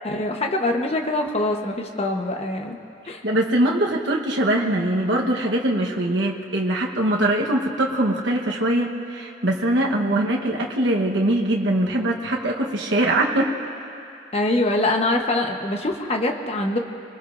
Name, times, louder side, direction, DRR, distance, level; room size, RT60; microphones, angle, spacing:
voice 1, 0.0-2.8 3.0-3.2 10.0-10.3 14.3-16.8, left 2 dB, 35° left, 3 dB, 1.1 m, -24 dB
voice 2, 3.2-13.5, right 1 dB, 85° right, -1 dB, 1.2 m, -22 dB
26.0 x 20.5 x 2.6 m, 2.6 s
head